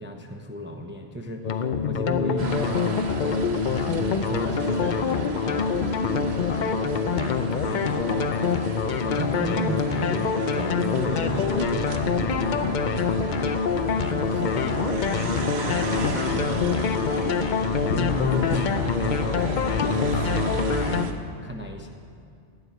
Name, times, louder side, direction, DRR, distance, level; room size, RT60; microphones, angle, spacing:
voice 1, 0.0-6.8 7.2-8.1 8.9-13.6 13.9-21.9, left 1 dB, 15° right, 4 dB, 0.6 m, -35 dB
sound 1, 1.4-21.0, left 6 dB, 50° left, 0.6 m, -25 dB
sound 2, 2.4-21.1, right 3 dB, 65° right, 1.1 m, -33 dB
sound 3, 11.2-14.4 14.7-15.3 15.6-17.3 17.8-18.0 18.4-18.9 19.7-20.0, left 5 dB, 90° left, 1.3 m, -34 dB
12.5 x 7.9 x 9.2 m, 2.4 s
omnidirectional pair, 1.2 m